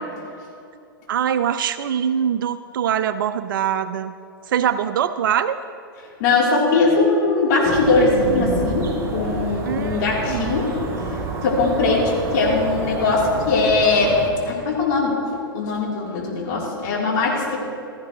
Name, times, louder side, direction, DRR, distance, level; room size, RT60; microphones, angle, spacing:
voice 1, 1.1-4.1 4.5-5.6 9.7-10.5, right 9 dB, 60° right, 12 dB, 0.4 m, -23 dB
voice 2, 6.2-10.8 11.4-14.2 14.5-15.2 15.5-17.6, left 3 dB, 50° left, -4 dB, 3.6 m, -20 dB
sound 1, 7.6-14.3, right 3 dB, 20° right, 3.4 m, -29 dB
16.5 x 13.5 x 3.1 m, 2.5 s
figure-of-eight pair, 105°, 13 cm